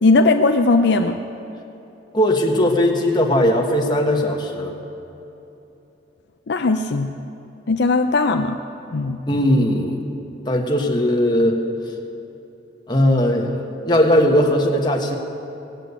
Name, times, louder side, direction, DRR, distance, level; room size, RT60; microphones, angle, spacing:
voice 1, 0.0-1.2 6.5-7.1 7.7-8.6 8.9-9.2, left 3 dB, 60° left, 6 dB, 0.5 m, -18 dB
voice 2, 2.1-4.8 9.3-10.0 10.4-11.6 12.9-15.2, left 1 dB, 25° left, 1 dB, 1.4 m, -18 dB
18.5 x 7.6 x 8.2 m, 3.0 s
head